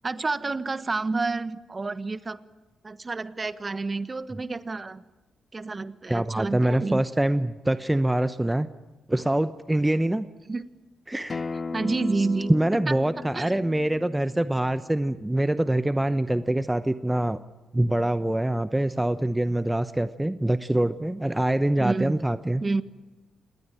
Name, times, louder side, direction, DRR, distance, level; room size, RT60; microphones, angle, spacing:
voice 1, 0.0-2.4 2.8-5.0 5.5-7.0 10.5-10.6 11.7-12.5 12.9-13.0 13.3-13.5 21.8-22.2 22.6-22.8, right 3 dB, 35° right, 14 dB, 1.3 m, -29 dB
voice 2, 6.1-8.7 9.1-10.2 11.1-11.4 12.5-17.4 17.7-22.6, right 1 dB, 10° right, 12 dB, 1.0 m, -24 dB
Acoustic guitar, 11.3-16.5, left 4 dB, 45° left, 0.9 m, -38 dB
27.0 x 19.5 x 9.1 m, 1.2 s
supercardioid pair, 50°, 0 cm